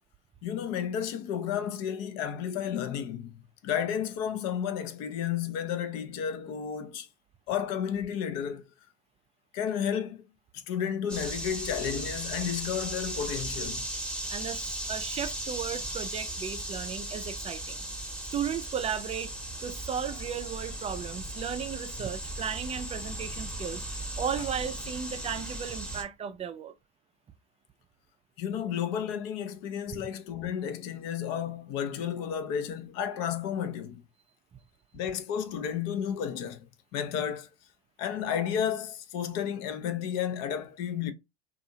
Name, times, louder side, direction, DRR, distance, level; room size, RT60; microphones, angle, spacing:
voice 1, 0.4-3.4 3.6-7.1 7.5-8.6 9.5-10.2 10.5-13.9 28.4-34.0 34.9-36.6 36.9-37.5 38.0-41.1, left 8 dB, 55° left, 0.7 m, -32 dB
sound 1, 11.1-26.0, right 1 dB, 5° left, 1.0 m, -37 dB
voice 2, 14.3-17.9 18.3-19.3 19.6-23.8 24.2-26.7 30.0-30.1, right 8 dB, 20° right, 0.4 m, -35 dB
2.6 x 2.5 x 2.7 m
hypercardioid pair, 85°, 32 cm